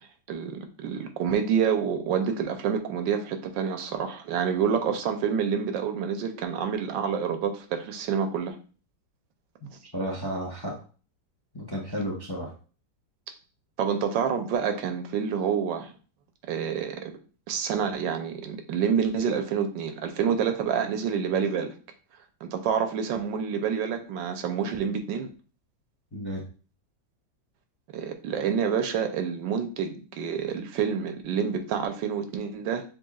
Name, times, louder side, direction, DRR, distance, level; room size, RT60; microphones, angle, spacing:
voice 1, 0.3-8.5 9.7-9.8 13.8-15.9 16.5-17.1 17.5-21.7 22.4-25.3 27.9-32.8, right 7 dB, 85° right, 7 dB, 1.4 m, -28 dB
voice 2, 9.9-10.7 11.5-12.5 26.1-26.4, equal, 20° left, -1 dB, 0.6 m, -32 dB
6.6 x 3.4 x 2.4 m, 0.38 s
omnidirectional pair, 1.9 m